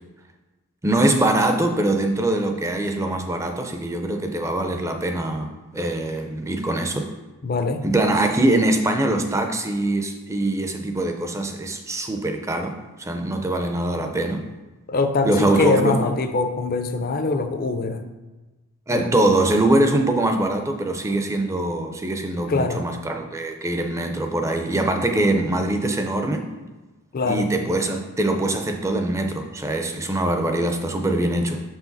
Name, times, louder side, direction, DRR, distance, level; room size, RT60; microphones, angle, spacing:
voice 1, 0.8-7.1 7.8-14.4 15.2-16.0 18.9-26.5 27.2-31.6, right 1 dB, 15° right, 4 dB, 0.5 m, -23 dB
voice 2, 7.4-7.9 14.9-18.1 18.9-19.1 22.5-22.9 27.1-27.5, left 3 dB, 40° left, 8 dB, 0.5 m, -23 dB
6.1 x 4.8 x 4.0 m, 1.2 s
head